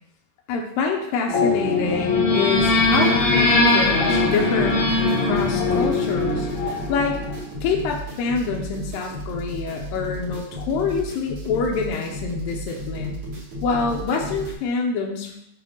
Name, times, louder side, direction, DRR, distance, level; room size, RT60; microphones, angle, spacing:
voice 1, 0.5-4.8 5.2-7.2 7.6-13.2 13.6-15.3, left 5 dB, 85° left, 1 dB, 2.0 m, -26 dB
sound 1, 1.3-7.4, left 3 dB, 65° left, 1.9 m, -21 dB
sound 2, 2.5-14.5, equal, 85° right, 1.2 m, -33 dB
7.2 x 2.5 x 5.3 m, 0.78 s
omnidirectional pair, 4.7 m